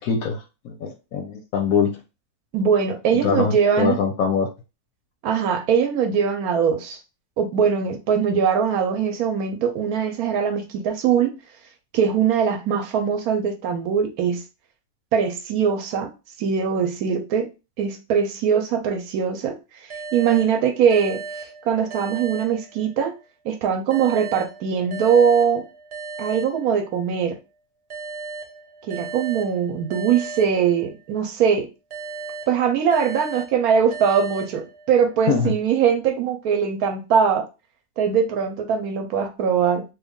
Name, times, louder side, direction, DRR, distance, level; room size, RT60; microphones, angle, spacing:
voice 1, 0.0-2.0 3.2-4.5 35.3-35.5, left 6 dB, 70° left, 0.9 m, -23 dB
voice 2, 2.5-4.0 5.2-7.0 7.4-11.3 11.9-14.4 15.1-16.1 16.4-17.5 17.8-19.6 20.1-23.1 23.4-25.6 26.2-27.4 28.9-31.7 32.5-37.4 38.0-39.8, right 7 dB, 75° right, 1.0 m, -21 dB
sound 1, 19.9-23.2 23.9-27.2 27.9-31.2 31.9-35.2, right 4 dB, 50° right, 0.8 m, -37 dB
3.2 x 2.3 x 3.6 m
omnidirectional pair, 1.7 m